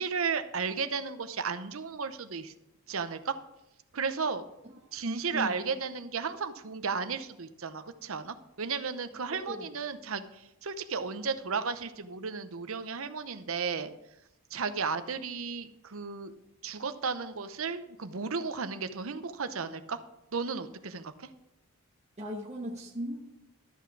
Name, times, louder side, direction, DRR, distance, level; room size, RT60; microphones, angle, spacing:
voice 1, 0.0-2.5 2.9-3.3 3.9-4.5 4.9-13.9 14.5-16.3 16.6-20.0 20.3-21.3, right 5 dB, 65° right, 11 dB, 0.8 m, -34 dB
voice 2, 5.0-5.6 9.3-9.7 22.2-23.2, equal, 30° right, -1 dB, 1.0 m, -37 dB
13.0 x 5.8 x 6.1 m, 0.87 s
head